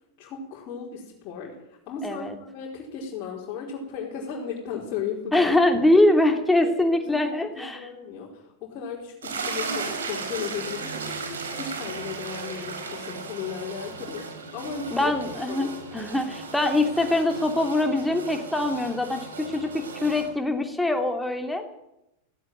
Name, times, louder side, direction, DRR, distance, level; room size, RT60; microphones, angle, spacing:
voice 1, 0.2-2.3 2.5-5.5 6.6-11.2 11.5-14.3 14.5-15.1 15.5-15.7 20.1-20.2, left 7 dB, 40° left, -3 dB, 5.0 m, -35 dB
voice 2, 2.0-2.3 5.3-7.9 14.9-21.6, left 1 dB, 5° left, 5 dB, 3.0 m, -23 dB
sound 1, 9.2-20.3, right 4 dB, 65° right, 4.6 m, -36 dB
17.0 x 17.0 x 9.2 m, 0.87 s
figure-of-eight pair, 90°, 0 cm